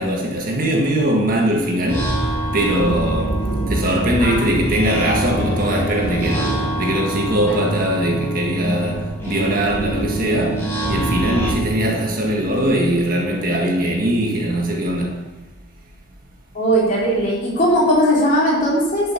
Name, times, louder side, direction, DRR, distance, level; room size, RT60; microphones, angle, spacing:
voice 1, 0.0-2.2 2.5-15.2, right 1 dB, 45° right, 1.7 m, -21 dB
sound 1, 1.9-11.5, right 1 dB, 10° left, 3.3 m, -24 dB
voice 2, 16.5-19.1, equal, 35° left, 3.9 m, -18 dB
12.0 x 6.5 x 5.8 m
head